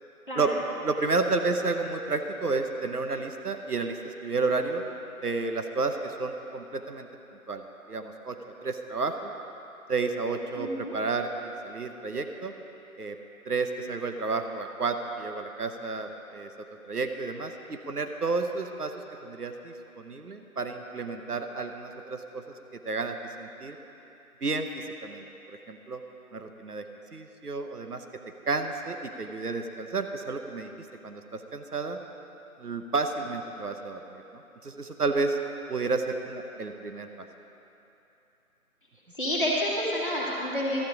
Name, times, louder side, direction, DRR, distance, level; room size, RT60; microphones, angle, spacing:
voice 1, 0.8-4.8 5.2-7.1 7.5-9.3 9.9-12.5 13.0-13.2 13.5-16.5 16.9-18.9 19.2-22.4 22.8-23.8 24.4-26.0 26.3-26.9 27.1-28.0 28.5-30.7 31.0-32.0 32.6-34.2 34.6-35.4 35.7-37.1, right 3 dB, 85° right, 6 dB, 1.0 m, -31 dB
voice 2, 10.6-11.0 39.1-40.8, equal, 35° left, -7 dB, 2.1 m, -29 dB
13.0 x 9.8 x 4.9 m, 3.0 s
figure-of-eight pair, 180°, 45 cm